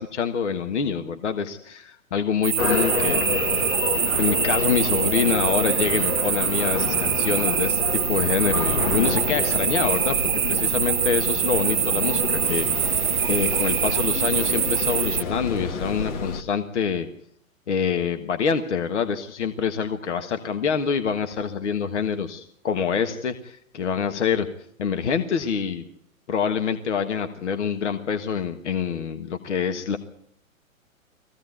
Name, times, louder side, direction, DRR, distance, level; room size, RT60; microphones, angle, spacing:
voice 1, 0.0-3.8 4.2-10.2 10.5-12.9 13.3-17.1 17.7-24.5 24.8-25.8 26.3-30.0, left 6 dB, 55° left, 8 dB, 1.5 m, -26 dB
sound 1, 2.4-15.2, right 10 dB, 35° right, 0.8 m, -24 dB
sound 2, 2.6-16.4, left 5 dB, 35° left, 1.5 m, -29 dB
20.5 x 15.5 x 9.4 m, 0.71 s
figure-of-eight pair, 115°, 42 cm